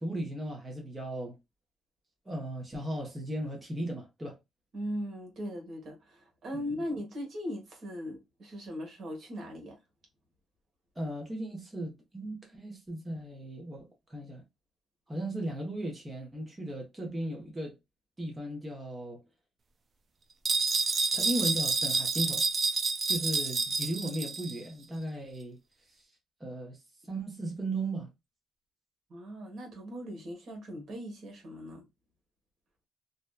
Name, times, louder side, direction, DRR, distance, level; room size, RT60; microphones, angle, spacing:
voice 1, 0.0-1.4 2.2-4.4 6.5-6.6 11.0-14.4 15.1-17.7 18.2-19.2 21.1-22.4 23.1-25.6 26.4-26.8 27.1-28.1, right 1 dB, 15° right, 0.9 m, -36 dB
voice 2, 4.7-9.8 29.1-31.8, equal, 60° right, 1.2 m, -39 dB
sound 1, 20.4-24.6, right 4 dB, 45° right, 0.4 m, -29 dB
2.7 x 2.2 x 2.3 m
cardioid pair, 90°, 0 cm